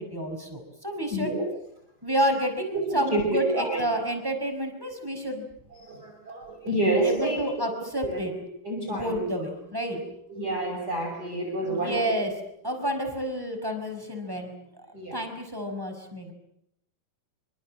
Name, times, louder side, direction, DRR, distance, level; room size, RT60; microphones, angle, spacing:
voice 1, 0.0-1.3 2.0-5.5 7.0-8.3 8.9-10.0 11.6-12.3 12.6-16.3, right 1 dB, 5° right, 5 dB, 5.1 m, -30 dB
voice 2, 1.1-1.5 2.7-2.8 3.1-3.8 5.8-7.4 8.0-8.2 8.7-9.3 10.3-12.0 14.9-15.2, right 1 dB, 25° right, 1 dB, 6.2 m, -28 dB
26.5 x 26.0 x 7.7 m, 0.79 s
omnidirectional pair, 4.5 m